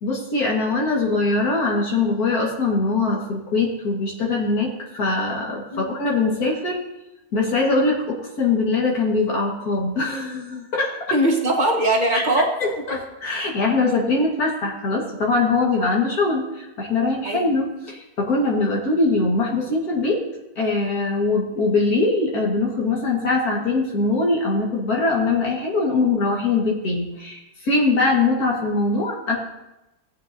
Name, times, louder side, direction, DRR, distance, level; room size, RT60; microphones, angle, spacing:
voice 1, 0.0-6.8 7.3-10.9 12.1-12.2 12.9-20.2 20.6-29.4, left 3 dB, 80° left, -2 dB, 2.3 m, -22 dB
voice 2, 11.1-12.5 17.2-17.5, right 1 dB, 30° right, 0 dB, 1.6 m, -20 dB
17.5 x 7.9 x 2.7 m, 0.96 s
omnidirectional pair, 1.6 m